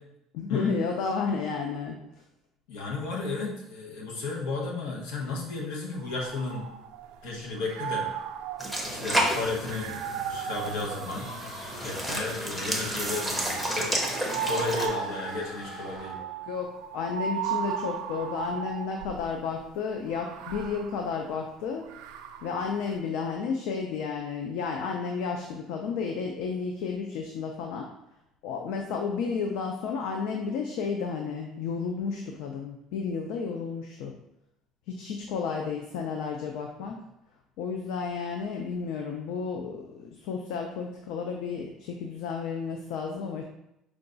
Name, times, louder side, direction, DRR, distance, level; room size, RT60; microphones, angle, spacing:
voice 1, 0.3-2.0 16.2-16.7 16.9-21.8 22.4-27.8 28.4-34.1 35.0-37.0 37.6-43.4, left 5 dB, 70° left, 3 dB, 0.4 m, -32 dB
voice 2, 2.7-6.7 7.2-8.1 8.9-10.0 10.3-11.3 11.8-13.9 14.5-16.2, left 3 dB, 90° left, -2 dB, 1.0 m, -33 dB
sound 1, 6.0-7.2 7.6-12.0 12.6-19.3 20.1-22.7, right 8 dB, 80° right, 0.4 m, -36 dB
sound 2, 8.6-14.9, equal, 5° left, 0.5 m, -31 dB
sound 3, 11.0-16.4, equal, 40° left, 1.3 m, -43 dB
4.9 x 2.3 x 3.8 m, 0.84 s
cardioid pair, 170°, 0 cm